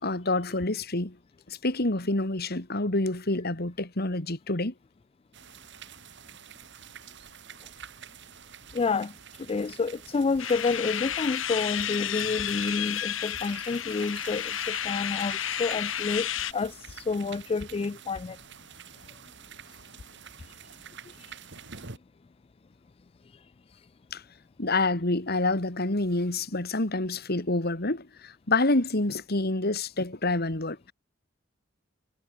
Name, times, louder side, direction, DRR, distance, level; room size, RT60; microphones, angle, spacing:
voice 1, 0.0-1.2 1.5-4.7 24.1-24.2 24.6-30.9, left 2 dB, 55° left, 2.8 m, -27 dB
sound 1, 5.3-22.0, right 7 dB, 65° right, 2.9 m, -48 dB
voice 2, 8.7-9.1 9.4-18.4, left 4 dB, 30° left, 0.3 m, -29 dB
sound 2, 10.4-16.5, left 10 dB, 85° left, 2.2 m, -31 dB
head